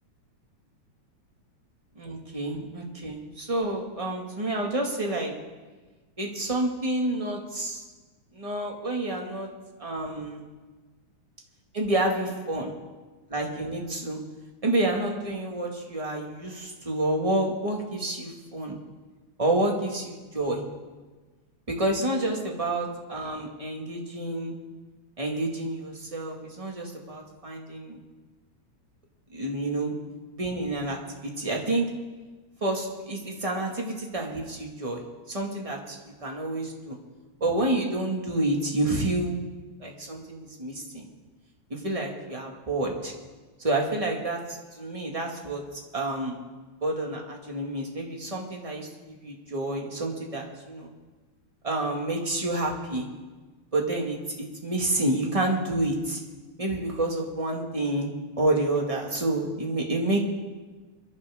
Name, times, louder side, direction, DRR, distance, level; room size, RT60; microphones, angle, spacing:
voice 1, 1.9-5.3 6.2-7.8 8.3-9.5 9.8-10.4 11.7-12.7 13.3-14.2 14.6-18.8 19.4-20.6 21.7-24.6 25.2-28.0 29.3-29.9 30.3-31.9 32.6-35.0 35.3-37.0 37.4-39.4 39.8-41.0 41.7-43.1 43.6-45.6 45.9-46.4 46.8-50.9 51.6-53.1 53.7-56.2 56.6-60.2, right 1 dB, 15° right, 0 dB, 1.3 m, -29 dB
26.0 x 11.0 x 3.6 m, 1.3 s
omnidirectional pair, 3.3 m